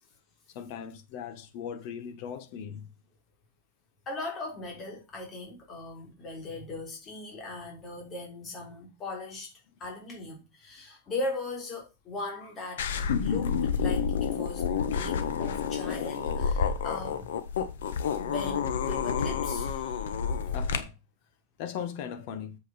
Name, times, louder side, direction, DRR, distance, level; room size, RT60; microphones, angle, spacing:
voice 1, 0.5-2.9 20.5-20.9 21.6-22.6, left 8 dB, 50° left, 1.7 m, -38 dB
voice 2, 4.1-9.5 9.8-12.9 13.2-17.3 18.2-20.0, left 2 dB, 25° left, 3.6 m, -39 dB
sound 1, 12.8-20.8, left 6 dB, 85° left, 1.5 m, -29 dB
8.4 x 7.9 x 4.5 m
supercardioid pair, 150°, 0 cm